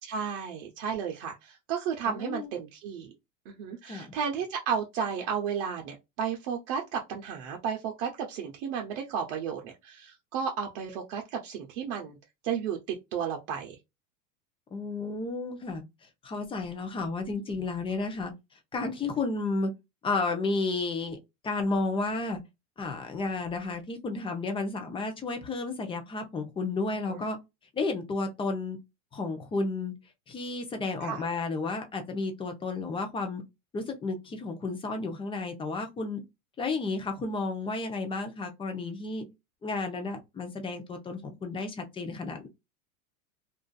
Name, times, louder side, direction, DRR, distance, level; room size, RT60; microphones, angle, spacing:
voice 1, 0.0-3.1 3.5-12.2 12.4-12.8 13.1-13.8 27.1-27.2 31.0-31.2, right 7 dB, 60° right, 0.7 m, -33 dB
voice 2, 2.1-2.5 3.9-4.1 14.7-15.8 16.2-18.3 18.7-19.7 20.0-21.2 21.4-22.4 22.8-27.4 27.7-28.8 29.1-29.9 30.3-33.4 33.7-36.2 36.6-39.3 39.6-42.5, left 3 dB, 15° left, 0.5 m, -32 dB
2.5 x 2.4 x 2.3 m
supercardioid pair, 130°, 39 cm